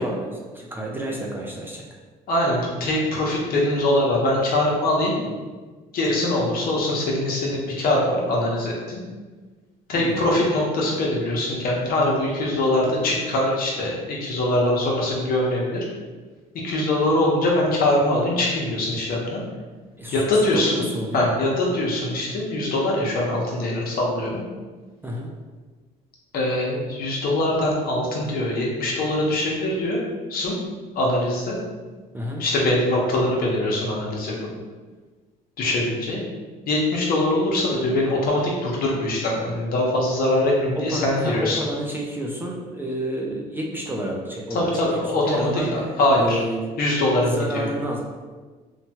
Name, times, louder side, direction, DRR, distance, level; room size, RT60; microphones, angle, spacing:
voice 1, 0.0-1.8 9.9-10.4 20.0-21.3 25.0-25.3 32.1-32.4 40.8-46.7 47.2-48.0, right 1 dB, 10° right, -2 dB, 0.4 m, -30 dB
voice 2, 2.3-5.2 5.9-9.0 9.9-15.8 16.6-19.4 20.1-20.8 21.1-24.4 26.3-30.0 30.3-30.6 30.9-31.6 32.4-34.3 35.6-36.2 36.7-41.6 44.5-46.4 46.8-47.7, left 1 dB, 60° left, -3 dB, 0.8 m, -22 dB
3.0 x 2.2 x 2.8 m, 1.4 s
cardioid pair, 110°, 17 cm